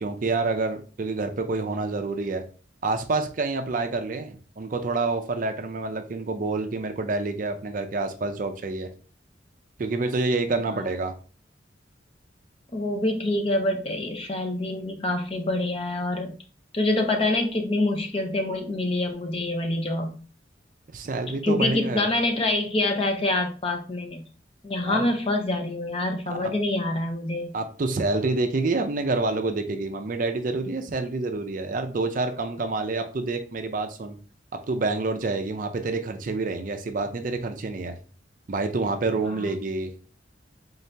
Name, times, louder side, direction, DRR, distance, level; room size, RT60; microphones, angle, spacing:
voice 1, 0.0-2.4 2.8-8.9 9.8-11.1 20.9-22.1 24.8-25.0 26.3-26.5 27.5-34.2 34.7-38.0 38.5-39.9, right 3 dB, 45° right, 6 dB, 0.4 m, -27 dB
voice 2, 12.7-16.3 16.7-20.1 21.4-24.2 24.6-27.5 39.3-39.4, left 2 dB, 30° left, 3 dB, 0.6 m, -26 dB
3.8 x 2.8 x 3.3 m, 0.38 s
head